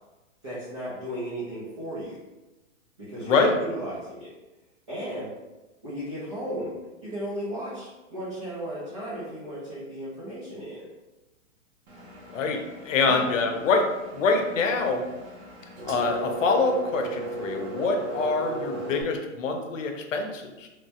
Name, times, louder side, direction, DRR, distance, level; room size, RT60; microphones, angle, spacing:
voice 1, 0.4-2.2 3.0-4.3 4.9-5.3 5.8-10.8 13.0-13.3, right 1 dB, 25° right, -10 dB, 0.5 m, -35 dB
voice 2, 3.2-3.6 12.3-15.1 15.8-20.7, left 4 dB, 80° left, 4 dB, 0.6 m, -25 dB
Engine, 11.9-19.0, right 2 dB, 55° right, 0.7 m, -37 dB
3.0 x 2.2 x 2.8 m, 1.1 s
hypercardioid pair, 175°, 38 cm